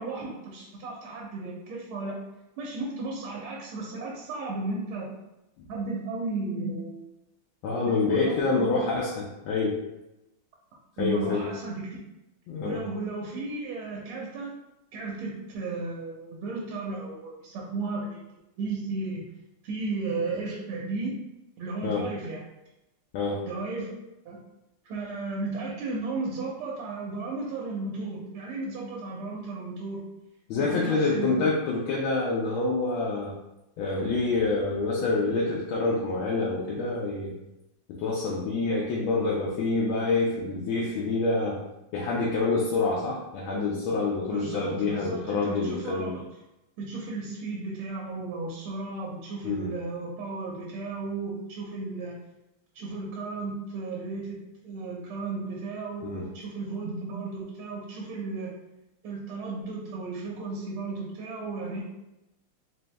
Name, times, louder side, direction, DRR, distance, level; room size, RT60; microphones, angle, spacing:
voice 1, 0.0-2.2 2.6-5.1 5.7-7.0 7.9-8.7 11.0-11.9 12.6-14.5 14.9-18.2 18.6-19.2 19.6-21.2 21.6-22.4 23.4-23.9 24.2-24.4 24.8-30.2 30.6-31.4 44.3-46.2 46.8-52.2 52.7-54.4 54.6-58.5 59.0-61.8, right 3 dB, 90° right, -3 dB, 1.6 m, -34 dB
voice 2, 7.6-9.8 11.0-11.4 12.5-12.8 21.8-22.0 23.1-23.4 30.5-33.3 33.8-37.3 37.9-41.6 41.9-46.2 49.4-49.7 56.0-56.2, left 3 dB, 75° left, -3 dB, 1.4 m, -27 dB
4.0 x 2.7 x 3.2 m, 0.94 s
omnidirectional pair, 2.3 m